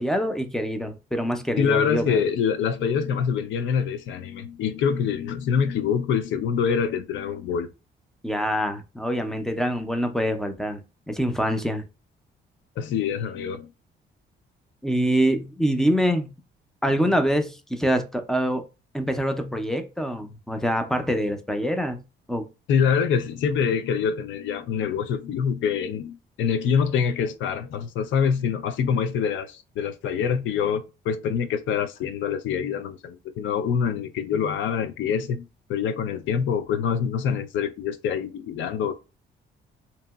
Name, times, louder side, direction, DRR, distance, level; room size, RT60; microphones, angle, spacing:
voice 1, 0.0-2.2 8.2-11.9 14.8-16.3 16.8-18.6 18.9-22.0 22.3-22.5, equal, ahead, 0.5 m, -25 dB
voice 2, 1.6-7.7 12.8-13.7 16.9-17.0 22.7-39.0, left 7 dB, 70° left, 0.4 m, -25 dB
2.8 x 2.7 x 2.3 m
cardioid pair, 90°, 20 cm